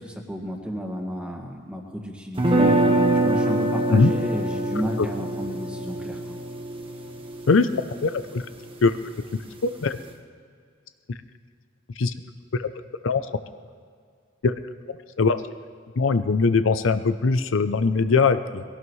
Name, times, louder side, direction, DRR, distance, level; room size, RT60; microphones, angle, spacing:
voice 1, 0.0-6.3, equal, 5° right, -1 dB, 1.9 m, -32 dB
sound 1, 2.4-8.3, right 1 dB, 30° right, 1.2 m, -24 dB
voice 2, 8.0-8.4 8.8-8.9 9.6-10.0 12.0-12.1 12.5-12.7 13.0-13.2 14.4-14.6 15.2-15.4 16.0-18.6, left 4 dB, 70° left, 11 dB, 0.5 m, -20 dB
22.0 x 17.5 x 3.2 m, 2.1 s
head